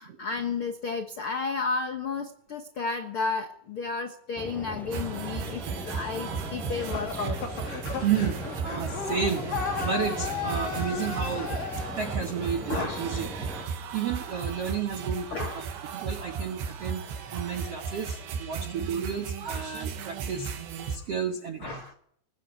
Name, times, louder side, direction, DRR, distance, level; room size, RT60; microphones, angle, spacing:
voice 1, 0.0-7.4 12.7-13.0 15.3-15.7 21.6-21.9, left 4 dB, 85° left, 6 dB, 1.1 m, -32 dB
sound 1, 4.4-13.6, equal, ahead, 5.6 m, -39 dB
sound 2, 4.9-21.0, right 6 dB, 90° right, 4.1 m, -35 dB
sound 3, 6.7-12.1, left 6 dB, 55° left, 4.3 m, -35 dB
voice 2, 8.0-11.5 12.0-13.3 13.9-15.3 15.5-15.7 15.9-17.0 17.3-20.5 20.9-21.8, right 7 dB, 70° right, 6 dB, 1.4 m, -31 dB
20.0 x 16.0 x 8.8 m, 0.68 s
omnidirectional pair, 4.9 m